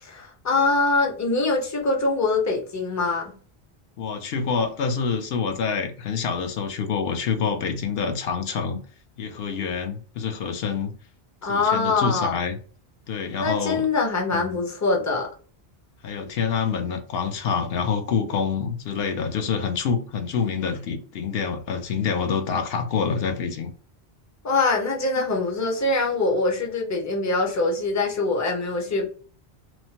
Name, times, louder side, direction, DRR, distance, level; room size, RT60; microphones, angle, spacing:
voice 1, 0.0-3.3 11.4-12.4 13.4-15.3 24.4-29.1, left 3 dB, 25° left, 0.4 m, -23 dB
voice 2, 4.0-8.8 9.2-10.9 11.4-12.6 13.1-13.9 14.3-14.6 16.0-23.7, left 6 dB, 70° left, 0.8 m, -27 dB
3.0 x 2.1 x 2.7 m
omnidirectional pair, 1.1 m